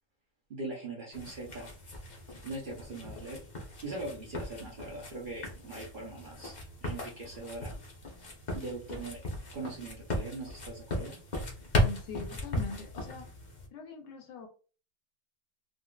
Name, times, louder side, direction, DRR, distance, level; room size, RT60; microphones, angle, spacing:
voice 1, 0.5-1.7 2.4-3.4 3.8-6.5 6.8-7.7 8.5-9.2 9.5-11.2, right 2 dB, 65° right, -2 dB, 0.5 m, -41 dB
sound 1, 1.1-13.7, left 1 dB, 55° left, 0.5 m, -37 dB
voice 2, 11.8-13.3 13.7-14.5, left 5 dB, 75° left, 6 dB, 1.3 m, -42 dB
3.8 x 2.4 x 2.3 m, 0.37 s
omnidirectional pair, 2.0 m